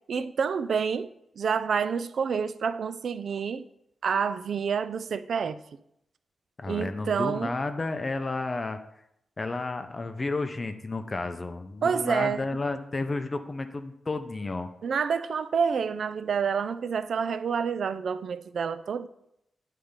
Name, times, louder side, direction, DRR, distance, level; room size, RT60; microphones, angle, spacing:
voice 1, 0.1-1.1 1.4-3.6 4.0-5.6 6.7-7.5 11.8-12.4 14.8-19.1, right 6 dB, 65° right, 13 dB, 0.4 m, -28 dB
voice 2, 6.6-8.8 9.4-14.7, left 3 dB, 30° left, 8 dB, 0.5 m, -32 dB
9.7 x 3.3 x 5.1 m, 0.78 s
wide cardioid pair, 120°, 0 cm